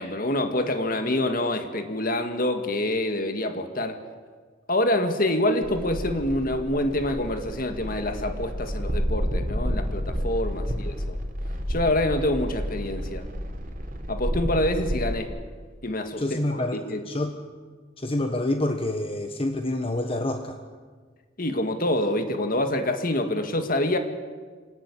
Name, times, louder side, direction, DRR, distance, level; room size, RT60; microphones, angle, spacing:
voice 1, 0.0-4.0 4.7-11.2 11.7-13.3 14.1-15.3 15.8-17.1 21.4-24.0, left 1 dB, 45° left, 7 dB, 1.9 m, -26 dB
sound 1, 5.6-15.2, equal, 45° right, 3.5 m, -30 dB
voice 2, 16.2-16.8 17.1-17.3 18.0-20.6, left 1 dB, 30° left, 6 dB, 1.4 m, -27 dB
26.0 x 18.0 x 9.9 m, 1.5 s
head